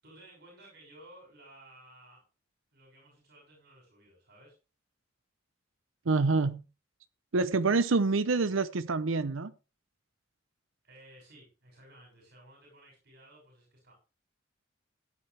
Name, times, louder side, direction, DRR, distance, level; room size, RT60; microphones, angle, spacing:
voice 1, 0.0-2.2 2.7-4.5 10.8-13.9, right 1 dB, 55° right, 6.5 m, -56 dB
voice 2, 6.1-6.6 7.3-9.5, right 3 dB, 85° right, 0.7 m, -26 dB
15.5 x 9.2 x 3.4 m
head